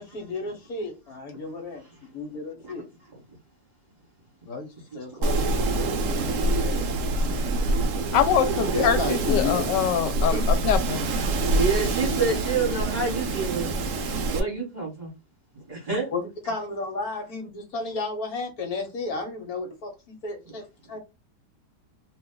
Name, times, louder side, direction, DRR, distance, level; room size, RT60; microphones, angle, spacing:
voice 1, 0.0-1.8 2.1-2.8 4.5-7.0 8.6-9.9 10.3-10.4 16.1-21.0, left 3 dB, 60° left, 1.3 m, -33 dB
Wind, 5.2-14.4, right 2 dB, 70° right, 0.8 m, -25 dB
voice 2, 8.1-10.3 10.6-11.1, left 9 dB, 80° left, 1.2 m, -23 dB
voice 3, 11.6-13.8 14.3-15.1 15.7-16.1, right 4 dB, 25° right, 1.3 m, -28 dB
2.8 x 2.3 x 3.6 m
omnidirectional pair, 1.9 m